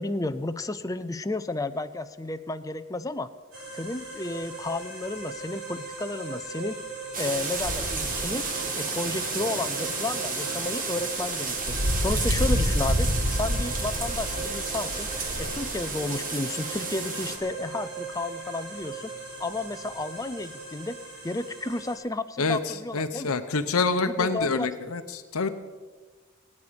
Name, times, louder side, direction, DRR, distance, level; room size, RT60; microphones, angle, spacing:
voice 1, 0.0-3.3 3.7-6.8 7.2-8.5 8.7-15.1 15.4-19.1 19.4-21.0 21.2-23.4 24.0-24.7, left 2 dB, 15° left, 10 dB, 0.6 m, -32 dB
sound 1, 3.5-22.0, right 3 dB, 75° right, 6.7 m, -40 dB
sound 2, 7.1-17.4, right 1 dB, 40° right, 2.0 m, -29 dB
voice 2, 22.4-25.5, left 4 dB, 90° left, 8 dB, 0.9 m, -27 dB
25.5 x 9.7 x 5.2 m, 1.4 s
head